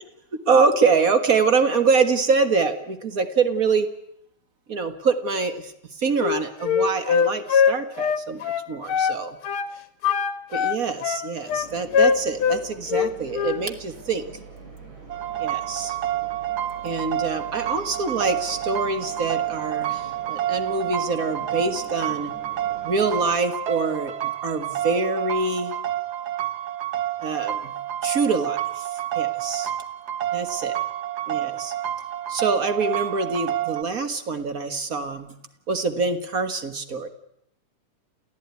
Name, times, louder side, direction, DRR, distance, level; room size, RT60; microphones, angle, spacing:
voice 1, 0.5-3.9 4.7-5.7 6.0-9.4 10.5-14.3 15.4-16.0 16.8-22.3 22.8-25.7 27.2-27.7 28.0-28.9 29.1-29.7 30.3-30.8 31.3-31.7 32.3-35.3 35.7-37.1, right 4 dB, 40° right, 8 dB, 1.4 m, -25 dB
Wind instrument woodwind instrument, 6.2-9.2 9.4-9.7 10.0-12.6 12.9-13.6, left 7 dB, 55° left, 1.9 m, -22 dB
sound 1, 11.5-23.4, right 3 dB, 90° right, 6.4 m, -44 dB
sound 2, 15.1-33.8, right 12 dB, 65° right, 1.0 m, -29 dB
28.5 x 15.5 x 9.5 m, 0.75 s
omnidirectional pair, 3.5 m